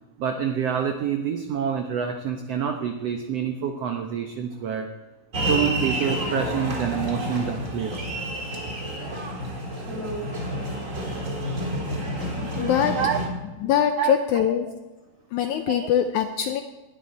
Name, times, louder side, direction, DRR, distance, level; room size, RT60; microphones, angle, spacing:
voice 1, 0.2-4.9 5.4-8.0 13.0-13.2 14.0-14.2 15.7-15.9, right 8 dB, 90° right, 5 dB, 1.4 m, -27 dB
sound 1, 5.3-13.3, right 1 dB, 30° right, 1.7 m, -29 dB
voice 2, 12.3-13.0 13.6-14.7 15.3-16.6, left 9 dB, 80° left, 8 dB, 1.7 m, -23 dB
19.5 x 11.5 x 4.2 m, 1.2 s
omnidirectional pair, 4.1 m